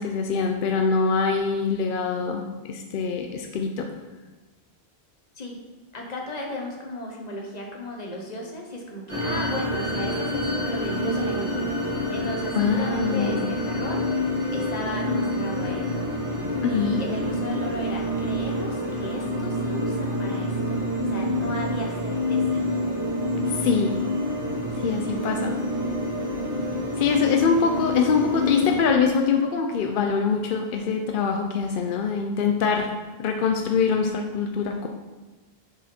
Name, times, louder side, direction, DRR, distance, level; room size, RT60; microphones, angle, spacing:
voice 1, 0.0-2.4 2.7-3.9 12.6-13.5 16.6-17.0 23.5-24.0 24.8-25.5 27.0-32.9 33.2-34.9, left 5 dB, 60° left, 3 dB, 0.7 m, -24 dB
voice 2, 5.9-14.1 14.5-16.3 16.7-20.8 21.1-22.6, left 1 dB, 40° left, 0 dB, 1.2 m, -35 dB
sound 1, 9.1-28.8, left 1 dB, 30° right, 2.1 m, -27 dB
6.8 x 4.8 x 4.3 m, 1.2 s
omnidirectional pair, 1.1 m